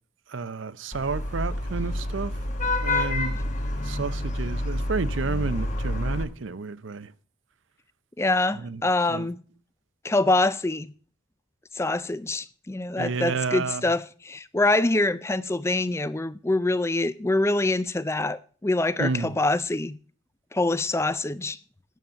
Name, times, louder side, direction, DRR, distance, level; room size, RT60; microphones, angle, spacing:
voice 1, 0.3-2.3 2.8-3.4 3.8-7.1 8.6-8.8 9.1-9.3 13.0-13.9 19.0-19.4, right 4 dB, 70° right, 0.6 m, -31 dB
Vehicle horn car horn honking / Traffic noise roadway noise, 0.9-6.2, left 1 dB, 35° left, 1.2 m, -28 dB
voice 2, 8.2-9.4 10.0-10.9 11.7-20.0 20.5-21.6, left 2 dB, 15° left, 0.4 m, -25 dB
9.3 x 7.2 x 6.3 m
head